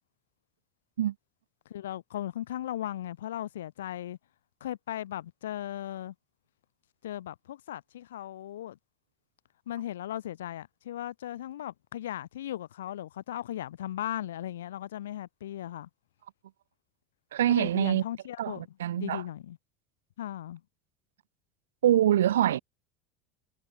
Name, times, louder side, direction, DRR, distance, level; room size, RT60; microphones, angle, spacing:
voice 1, 1.7-4.2 4.6-6.1 7.0-8.8 9.7-15.9 17.5-18.6 19.0-19.6 20.2-20.6, left 12 dB, 90° left, 7.8 m, -37 dB
voice 2, 17.3-18.0 18.4-19.2 21.8-22.6, right 11 dB, 90° right, 2.5 m, -24 dB
hypercardioid pair, 95°, 0 cm